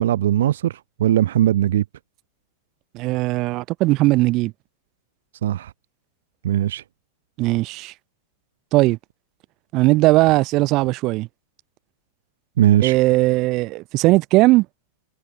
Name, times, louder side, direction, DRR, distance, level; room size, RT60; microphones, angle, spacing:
voice 1, 0.0-1.8 5.4-5.7 6.4-6.8 12.6-13.0, right 12 dB, 75° right, 2.2 m, -19 dB
voice 2, 2.9-4.5 7.4-7.9 8.7-9.0 9.7-11.3 12.8-14.7, right 20 dB, 30° right, 2.2 m, -18 dB
supercardioid pair, 175°, 0 cm